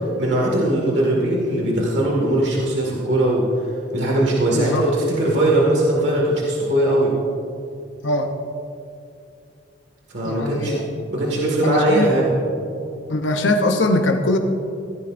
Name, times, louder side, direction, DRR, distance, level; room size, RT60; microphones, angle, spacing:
voice 1, 0.0-3.4 3.9-7.1 10.1-10.8 11.1-12.3, right 1 dB, 65° right, -3 dB, 1.9 m, -20 dB
voice 2, 4.5-4.9 8.0-8.3 10.2-10.8 11.6-12.1 13.1-14.4, left 2 dB, 75° left, 4 dB, 0.8 m, -21 dB
16.0 x 14.0 x 2.6 m, 2.6 s
head